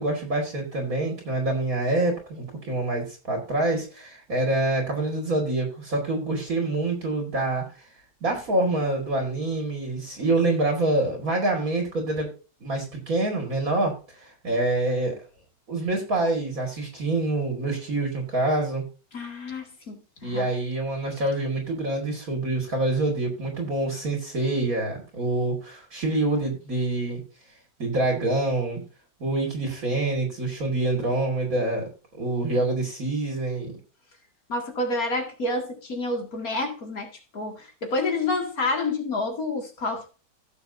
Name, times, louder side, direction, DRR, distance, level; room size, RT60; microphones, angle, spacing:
voice 1, 0.0-7.9 8.2-12.3 12.6-15.2 15.7-18.8 20.2-27.2 27.8-28.8 29.2-31.9 32.2-33.7, right 2 dB, 50° right, 2.5 m, -26 dB
voice 2, 19.1-20.0 20.2-20.4 34.5-40.1, left 2 dB, 55° left, 2.6 m, -28 dB
16.0 x 6.9 x 2.7 m
omnidirectional pair, 1.9 m